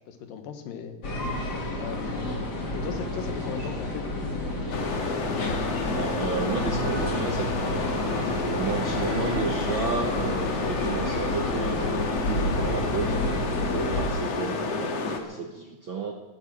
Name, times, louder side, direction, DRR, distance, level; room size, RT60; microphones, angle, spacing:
voice 1, 0.1-1.0 1.8-4.3, left 7 dB, 85° left, 7 dB, 3.0 m, -37 dB
sound 1, 1.0-14.1, left 1 dB, 35° left, 2.5 m, -30 dB
sound 2, 4.7-15.2, left 4 dB, 55° left, 2.4 m, -30 dB
voice 2, 5.9-16.1, right 5 dB, 65° right, 1 dB, 1.2 m, -32 dB
sound 3, 6.3-11.7, right 3 dB, 35° right, 3.5 m, -42 dB
15.0 x 12.0 x 7.7 m, 1.2 s
omnidirectional pair, 3.9 m